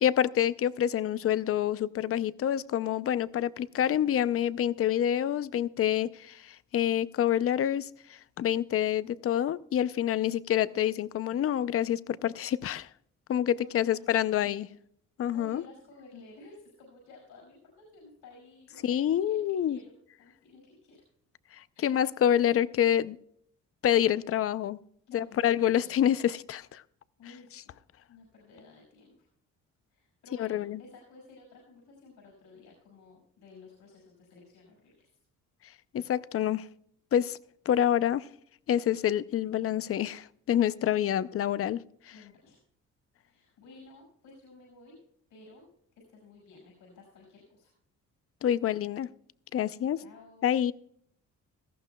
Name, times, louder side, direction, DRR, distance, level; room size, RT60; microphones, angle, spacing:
voice 1, 0.0-12.9 13.3-14.7 15.2-15.6 18.8-19.8 21.6-23.2 23.8-24.8 25.1-26.8 30.4-30.8 35.9-36.7 37.1-37.4 37.7-38.3 38.7-41.8 48.4-49.1 49.5-50.0 50.4-50.7, left 10 dB, 50° left, 16 dB, 0.6 m, -27 dB
voice 2, 13.6-14.6 15.3-21.0 21.7-22.0 25.1-25.9 27.2-27.7 28.1-29.3 29.9-35.1 42.1-42.6 43.2-45.0 45.3-45.7 45.9-47.7 50.0-50.5, left 3 dB, 80° left, 0 dB, 5.5 m, -53 dB
18.0 x 14.5 x 2.3 m, 0.68 s
cardioid pair, 90°, 30 cm